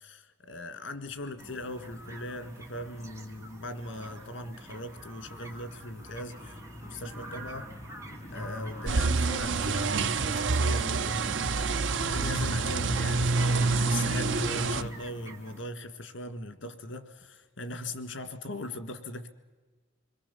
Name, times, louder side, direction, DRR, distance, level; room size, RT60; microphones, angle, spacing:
voice 1, 0.0-7.7 8.3-11.5 12.0-19.3, left 1 dB, 90° left, 1.9 m, -39 dB
sound 1, 1.1-14.9, equal, 40° left, 1.6 m, -41 dB
sound 2, 1.4-15.6, right 2 dB, 15° right, 1.9 m, -48 dB
sound 3, 8.9-14.8, right 4 dB, 75° right, 0.7 m, -27 dB
27.0 x 22.5 x 7.1 m
head